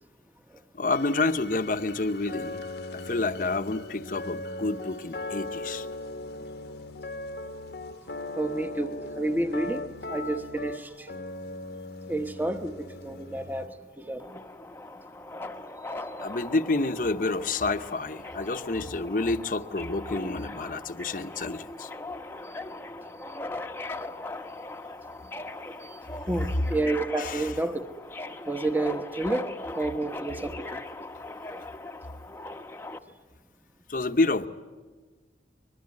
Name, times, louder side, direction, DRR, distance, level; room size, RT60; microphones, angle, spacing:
voice 1, 0.7-2.6 2.9-5.9 16.2-21.9 27.2-27.4 33.9-34.5, left 3 dB, 50° left, 0.9 m, -29 dB
sound 1, 0.9-13.7, left 2 dB, 70° left, 1.1 m, -39 dB
voice 2, 8.4-8.9 9.2-9.8 10.1-11.1 12.1-12.7 13.0-14.4 25.8-26.0 26.3-27.9 28.5-30.8, right 2 dB, 10° right, 1.0 m, -30 dB
Subway metro underground, 14.2-33.0, left 2 dB, 15° left, 0.9 m, -40 dB
24.5 x 21.5 x 9.6 m
head